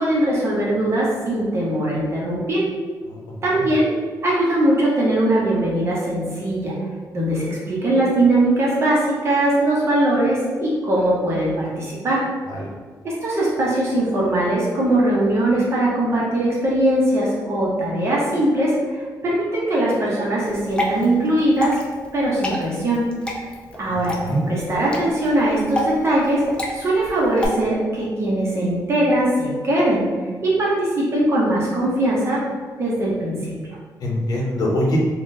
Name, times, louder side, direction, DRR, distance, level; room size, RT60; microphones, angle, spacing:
voice 1, 0.0-2.6 3.4-3.9 4.2-6.7 7.1-12.2 13.0-21.7 22.1-23.0 23.8-24.1 24.5-26.4 26.7-30.0 30.4-32.4 32.8-33.5, right 1 dB, 40° right, -5 dB, 0.7 m, -20 dB
voice 2, 3.1-3.6 12.5-12.7 23.9-24.4 34.0-35.0, equal, 60° left, -2 dB, 0.7 m, -24 dB
Water / Drip, 20.5-27.5, left 1 dB, 15° left, 0.4 m, -29 dB
3.6 x 2.1 x 2.6 m, 1.5 s
wide cardioid pair, 145°, 7 cm